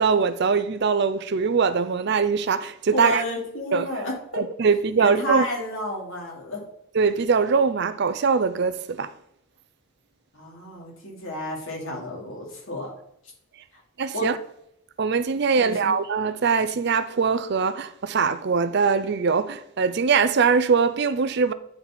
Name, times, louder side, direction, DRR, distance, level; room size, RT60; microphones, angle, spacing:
voice 1, 0.0-3.2 3.7-3.9 4.3-5.5 6.9-9.1 14.0-14.4 15.0-21.5, right 5 dB, 50° right, 0.5 m, -22 dB
voice 2, 2.9-4.4 5.0-6.6 10.3-12.9 14.1-14.3 15.5-16.0, left 1 dB, 65° left, 2.6 m, -31 dB
8.9 x 4.2 x 4.3 m
head